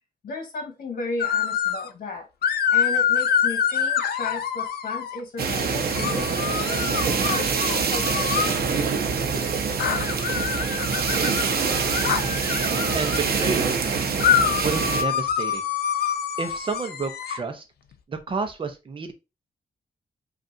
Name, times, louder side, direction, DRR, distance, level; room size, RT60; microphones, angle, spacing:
voice 1, 0.2-6.3 6.7-8.5, left 3 dB, 60° left, 3 dB, 1.2 m, -35 dB
sound 1, 1.2-1.9 2.4-5.2 5.9-8.6 9.8-13.2 14.2-17.4, left 8 dB, 90° left, 0.5 m, -26 dB
sound 2, 5.4-15.0, right 5 dB, 85° right, 0.7 m, -25 dB
voice 2, 12.9-15.6 16.4-17.6 18.1-19.1, right 4 dB, 35° right, 7 dB, 0.7 m, -30 dB
5.2 x 2.4 x 2.6 m, 0.26 s
wide cardioid pair, 165°, 16 cm